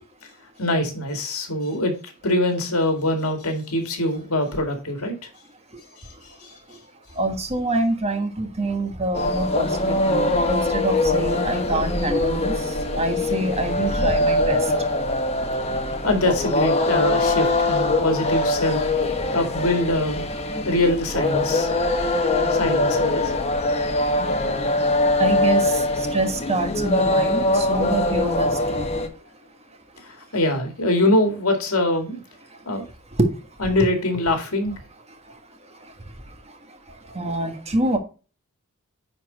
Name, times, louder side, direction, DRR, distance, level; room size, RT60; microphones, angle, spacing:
voice 1, 0.6-5.3 6.2-6.5 16.0-18.9 19.3-20.2 20.7-21.7 22.5-23.3 30.0-32.2 32.7-32.9 33.6-34.7, left 1 dB, 75° left, 2.2 m, -23 dB
voice 2, 7.2-12.5 12.9-14.6 25.2-25.6 26.1-28.9 33.2-33.3 37.1-38.0, right 2 dB, 30° right, 1.4 m, -25 dB
sound 1, 9.1-29.1, left 2 dB, 30° left, 1.2 m, -22 dB
9.7 x 4.4 x 4.0 m
head